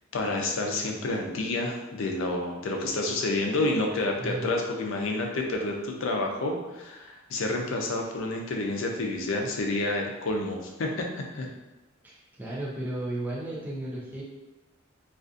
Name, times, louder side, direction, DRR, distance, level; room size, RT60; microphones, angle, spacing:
voice 1, 0.1-11.1 11.3-11.5, left 2 dB, 75° left, 2 dB, 0.4 m, -29 dB
voice 2, 12.0-14.2, right 1 dB, 10° right, -5 dB, 0.4 m, -34 dB
2.5 x 2.4 x 2.4 m, 1.1 s
head